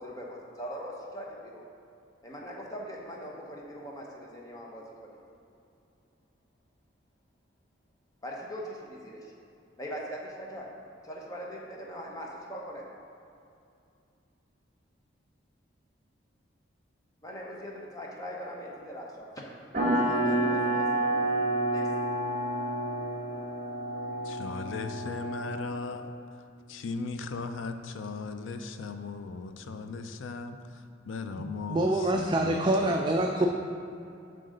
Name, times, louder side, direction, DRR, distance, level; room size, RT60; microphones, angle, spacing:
voice 1, 0.0-1.6 2.2-5.2 8.2-9.3 9.8-10.7 11.0-12.8 17.2-19.4 20.0-21.3 21.7-21.9, equal, 20° left, -2 dB, 1.0 m, -41 dB
sound 1, 19.7-25.9, right 1 dB, 40° right, 1.7 m, -29 dB
voice 2, 24.2-26.1 26.7-31.8 32.1-33.0, left 4 dB, 80° left, 8 dB, 0.5 m, -37 dB
voice 3, 31.4-33.5, right 1 dB, 25° right, 1 dB, 0.3 m, -26 dB
7.6 x 3.9 x 6.4 m, 2.6 s
head